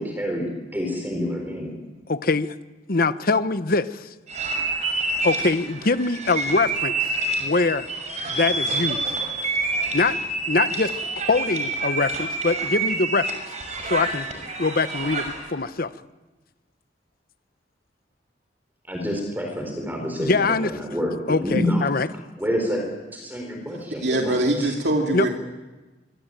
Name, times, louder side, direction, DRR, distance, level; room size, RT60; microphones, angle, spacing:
voice 1, 0.0-1.7 18.9-21.8 22.4-22.8 23.1-24.7, equal, 10° right, 2 dB, 4.6 m, -28 dB
voice 2, 2.1-2.5 2.9-4.1 5.2-7.1 7.4-7.9 8.3-9.0 9.9-10.2 10.5-10.9 11.3-13.3 13.9-14.3 14.6-15.9 20.2-20.7 21.3-22.1 25.1-25.3, left 3 dB, 55° left, 13 dB, 1.0 m, -23 dB
sound 1, 4.3-15.5, right 3 dB, 40° right, 6.4 m, -27 dB
voice 3, 24.0-25.3, right 1 dB, 70° right, 1 dB, 2.8 m, -22 dB
25.5 x 24.0 x 9.1 m, 1.2 s
head